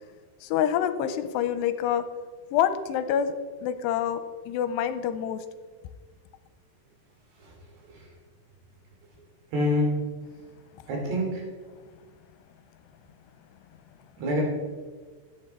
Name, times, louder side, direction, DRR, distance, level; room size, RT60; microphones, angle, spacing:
voice 1, 0.4-2.0 2.5-3.3 3.6-4.2 4.5-5.4, left 9 dB, 85° left, 10 dB, 2.9 m, -26 dB
voice 2, 9.5-10.0 10.9-11.4 14.2-14.4, left 1 dB, 70° right, -1 dB, 5.1 m, -25 dB
16.5 x 11.0 x 4.4 m, 1.5 s
omnidirectional pair, 4.9 m